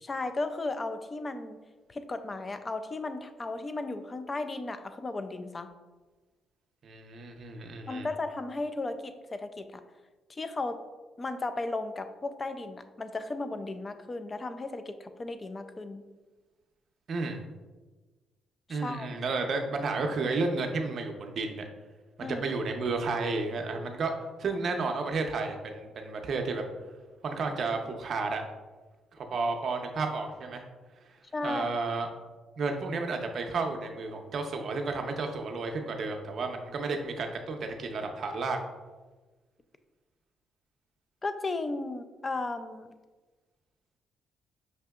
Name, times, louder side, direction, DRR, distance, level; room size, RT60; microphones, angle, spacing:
voice 1, 0.0-1.6 1.9-5.7 7.9-9.8 10.3-10.8 11.2-16.1 18.7-19.1 22.2-22.4 31.3-31.7 41.2-42.9, left 2 dB, 30° left, 10 dB, 0.3 m, -35 dB
voice 2, 6.8-8.1 17.1-17.4 18.7-21.7 22.2-24.1 24.4-26.6 27.2-28.4 29.1-30.6 31.4-32.1 32.6-38.6, right 3 dB, 55° right, 4 dB, 0.5 m, -32 dB
5.8 x 2.7 x 2.3 m, 1.3 s
cardioid pair, 90°, 0 cm